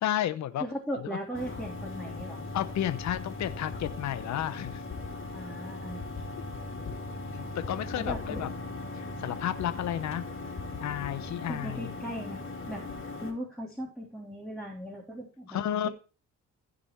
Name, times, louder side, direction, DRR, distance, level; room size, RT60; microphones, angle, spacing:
voice 1, 0.0-0.7 1.0-1.2 2.5-4.8 7.3-8.5 8.9-10.2 10.8-11.9 15.5-15.9, left 11 dB, 65° left, 12 dB, 0.9 m, -32 dB
voice 2, 0.6-2.4 5.3-6.0 7.9-8.4 11.4-15.6, right 1 dB, ahead, -3 dB, 3.2 m, -38 dB
sound 1, 1.3-13.3, left 3 dB, 40° left, 3.1 m, -39 dB
15.5 x 5.2 x 4.6 m, 0.35 s
cardioid pair, 90°, 30 cm